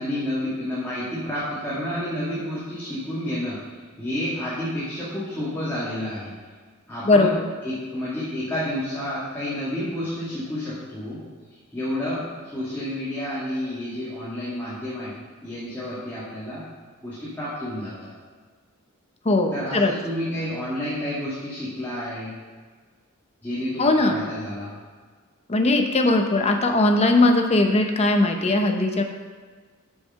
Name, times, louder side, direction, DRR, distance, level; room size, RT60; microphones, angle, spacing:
voice 1, 0.0-6.3 6.9-11.2 11.7-15.1 15.4-16.6 17.0-18.1 19.5-22.3 23.4-24.7, left 1 dB, 10° left, -11 dB, 2.3 m, -30 dB
voice 2, 19.2-19.9 23.8-24.2 25.5-29.0, left 2 dB, 30° left, 4 dB, 0.9 m, -19 dB
7.6 x 6.6 x 5.8 m, 1.5 s
head